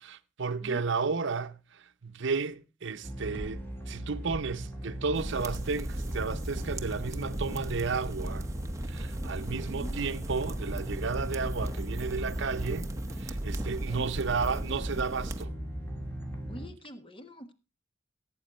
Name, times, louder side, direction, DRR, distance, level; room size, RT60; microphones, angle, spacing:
voice 1, 0.0-1.6 2.0-3.6 3.9-8.5 8.9-12.9 13.2-15.5, right 4 dB, 65° right, 0.7 m, -33 dB
voice 2, 0.6-1.4 9.5-10.2 10.9-11.1 13.7-14.1 16.5-17.5, equal, 25° left, 1.3 m, -46 dB
sound 1, 3.0-16.7, right 1 dB, 10° left, 2.5 m, -38 dB
sound 2, 5.1-15.4, right 1 dB, 15° right, 0.9 m, -37 dB
16.5 x 8.6 x 4.2 m
head